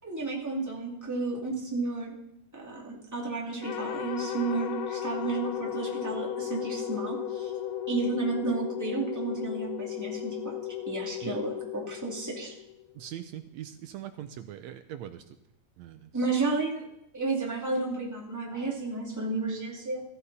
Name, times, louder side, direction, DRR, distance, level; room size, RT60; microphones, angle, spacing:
voice 1, 0.0-2.1 2.5-7.5 7.9-10.6 10.9-12.6 16.1-16.8 17.1-20.0, right 3 dB, 5° right, -3 dB, 2.4 m, -32 dB
sound 1, 3.6-12.9, left 10 dB, 70° left, 1.2 m, -35 dB
voice 2, 13.0-15.2 15.8-16.1, right 11 dB, 75° right, 9 dB, 1.8 m, -41 dB
15.0 x 15.0 x 4.2 m, 0.76 s
omnidirectional pair, 3.5 m